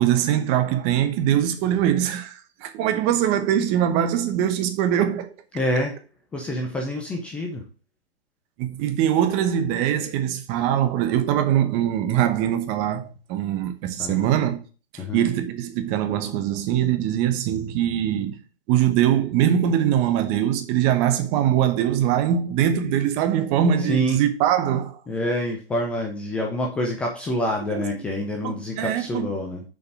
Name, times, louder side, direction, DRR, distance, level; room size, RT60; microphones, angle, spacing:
voice 1, 0.0-5.3 8.6-14.6 14.9-18.4 18.7-25.0 27.7-27.8 28.4-29.3, right 10 dB, 20° right, 0.9 m, -22 dB
voice 2, 5.5-6.0 6.3-7.6 14.0-14.3 15.0-15.3 23.8-24.2 25.1-29.6, equal, 5° left, 0.4 m, -27 dB
6.9 x 5.2 x 5.7 m
hypercardioid pair, 140°, 32 cm